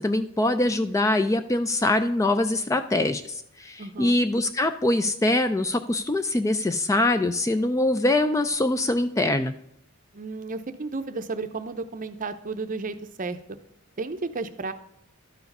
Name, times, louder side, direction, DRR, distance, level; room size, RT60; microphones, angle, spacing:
voice 1, 0.0-9.5, left 2 dB, 15° left, 10 dB, 0.3 m, -23 dB
voice 2, 3.8-4.2 10.1-13.4 14.0-14.7, right 3 dB, 40° right, 10 dB, 0.6 m, -33 dB
12.0 x 4.8 x 5.3 m, 0.73 s
head